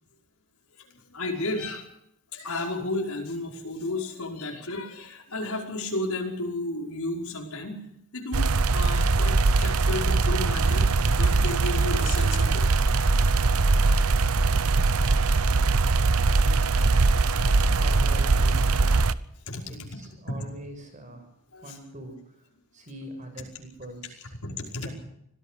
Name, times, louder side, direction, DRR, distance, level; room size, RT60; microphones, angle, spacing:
voice 1, 1.1-1.9 2.3-7.8 8.1-13.2 16.4-16.6 17.5-17.7 19.5-19.9 20.3-20.4 21.5-21.6 24.4-24.9, left 2 dB, 85° left, 1 dB, 5.4 m, -33 dB
sound 1, 8.3-19.1, right 3 dB, 85° right, 0.9 m, -21 dB
voice 2, 17.7-19.1 19.7-21.3 21.6-22.4 22.7-24.3 24.8-24.9, right 1 dB, 35° right, 6 dB, 6.4 m, -43 dB
25.5 x 17.0 x 6.7 m, 0.76 s
head